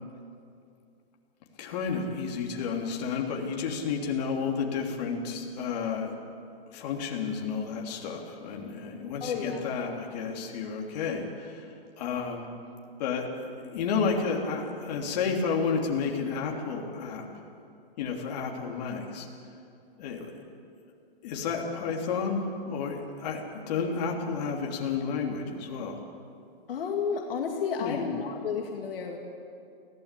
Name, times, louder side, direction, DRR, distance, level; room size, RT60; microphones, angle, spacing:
voice 1, 1.6-6.1 6.7-11.7 12.0-12.5 13.0-17.3 18.0-19.3 20.0-20.5 21.2-26.0 27.8-28.0, left 5 dB, 45° left, 0 dB, 3.2 m, -31 dB
voice 2, 9.2-9.6 26.7-29.2, left 6 dB, 65° left, 1 dB, 2.4 m, -31 dB
23.0 x 16.0 x 8.4 m, 2.5 s
hypercardioid pair, 160°, 30 cm